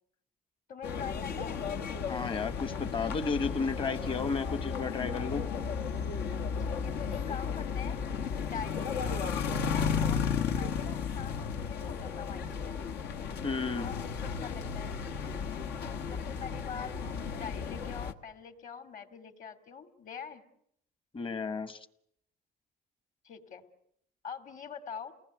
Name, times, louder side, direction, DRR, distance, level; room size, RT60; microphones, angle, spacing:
voice 1, 0.7-1.6 6.6-8.0 8.4-12.8 13.7-15.0 16.1-16.9 17.3-20.4 23.2-23.6 24.2-25.1, left 7 dB, 50° left, 10 dB, 2.8 m, -44 dB
sound 1, 0.8-18.1, left 6 dB, 80° left, 1.4 m, -34 dB
voice 2, 2.0-5.5 13.4-13.9 21.1-21.8, left 4 dB, 30° left, 14 dB, 1.3 m, -33 dB
29.5 x 19.5 x 9.2 m, 0.75 s
cardioid pair, 110°, 17 cm